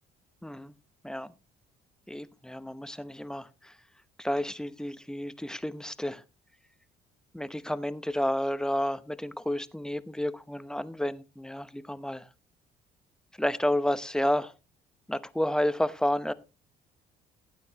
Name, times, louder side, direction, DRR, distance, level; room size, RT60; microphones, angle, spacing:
voice 1, 0.4-0.7 1.0-1.3 2.1-3.7 4.2-6.2 7.3-12.3 13.4-14.5 15.1-16.3, left 1 dB, 5° left, 0.8 m, -31 dB
16.5 x 9.0 x 2.9 m
cardioid pair, 110°, 17 cm